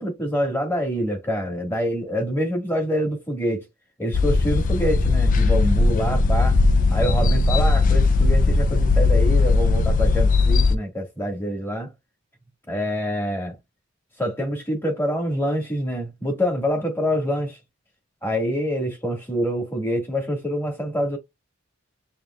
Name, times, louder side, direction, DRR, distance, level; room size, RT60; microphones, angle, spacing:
voice 1, 0.0-3.6 4.0-6.6 6.9-11.9 12.7-13.6 14.2-17.6 18.2-21.2, equal, 10° left, 1.7 m, -26 dB
sound 1, 4.1-10.8, left 3 dB, 40° left, 0.3 m, -18 dB
6.6 x 2.8 x 2.3 m
head